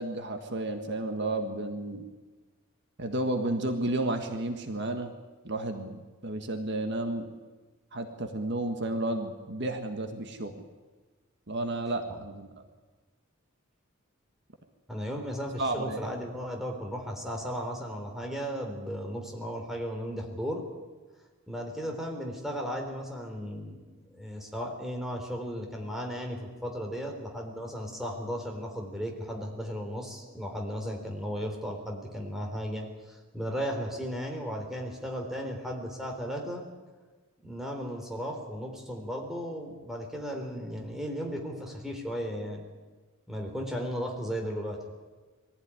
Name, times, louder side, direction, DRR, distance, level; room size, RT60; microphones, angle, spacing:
voice 1, 0.0-2.0 3.0-5.1 5.4-7.3 7.9-10.5 11.5-12.6 15.6-16.1, right 2 dB, 55° right, 5 dB, 1.7 m, -32 dB
voice 2, 14.9-20.6 21.5-23.8 24.1-36.6 37.4-42.6 43.3-44.8, equal, ahead, 1 dB, 3.7 m, -35 dB
22.5 x 15.5 x 9.8 m, 1.3 s
head